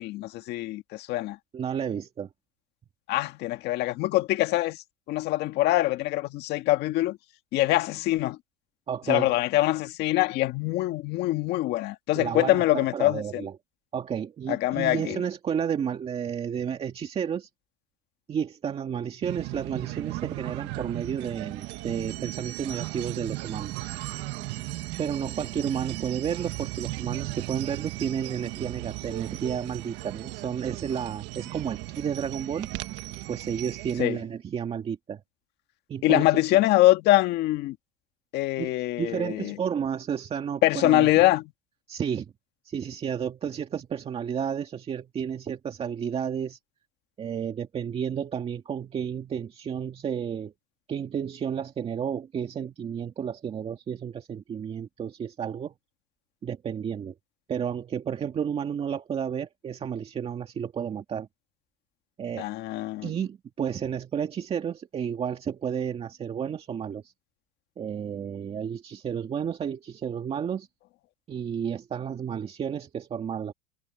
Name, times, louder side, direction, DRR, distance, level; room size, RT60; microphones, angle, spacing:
voice 1, 0.0-1.4 3.1-7.2 7.5-8.4 9.1-13.5 14.5-15.2 34.0-34.2 36.0-37.8 38.3-39.6 40.6-41.4 62.4-63.1, left 16 dB, 60° left, 1.8 m, -24 dB
voice 2, 1.5-2.3 8.9-9.3 12.1-13.6 13.9-17.5 18.3-23.9 25.0-32.9 33.3-35.2 35.9-36.6 38.6-41.2 41.9-42.3 42.6-46.6 47.2-50.5 50.9-55.7 56.4-57.1 57.5-61.3 62.2-62.5 63.0-67.1 67.8-70.7 71.3-73.5, right 8 dB, 30° right, 2.1 m, -32 dB
sound 1, 19.2-34.0, right 19 dB, 70° right, 1.6 m, -36 dB
cardioid pair, 135°, 20 cm